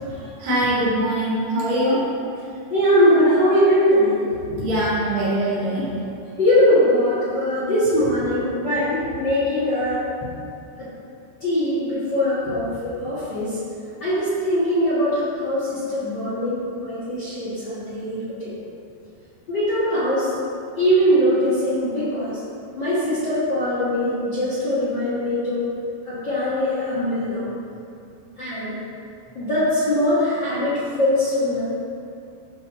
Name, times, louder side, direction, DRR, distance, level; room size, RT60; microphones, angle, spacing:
voice 1, 0.4-2.0 4.6-6.0, right 1 dB, 65° right, -7 dB, 1.7 m, -22 dB
voice 2, 2.7-4.2 4.5-4.7 5.2-5.4 6.4-10.0 11.4-13.6 14.0-18.5 19.5-20.3 20.8-22.4 22.8-25.7 26.1-27.4 28.4-28.7 29.3-31.6, equal, 80° left, -13 dB, 0.9 m, -21 dB
11.5 x 6.4 x 2.9 m, 2.5 s
omnidirectional pair, 5.3 m